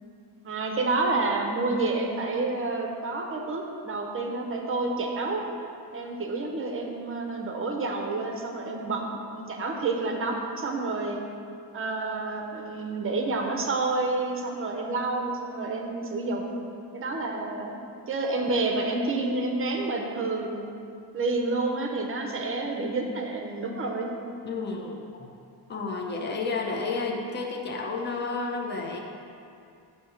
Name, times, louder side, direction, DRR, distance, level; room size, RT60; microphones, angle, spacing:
voice 1, 0.4-5.4 5.9-9.0 9.3-11.2 11.7-16.6 16.9-17.8 18.1-20.7 21.1-24.1, right 3 dB, 35° right, 1 dB, 0.6 m, -29 dB
voice 2, 24.4-25.3 25.7-29.0, left 3 dB, 25° left, 0 dB, 0.5 m, -31 dB
7.6 x 2.8 x 5.6 m, 2.5 s
wide cardioid pair, 165°, 40 cm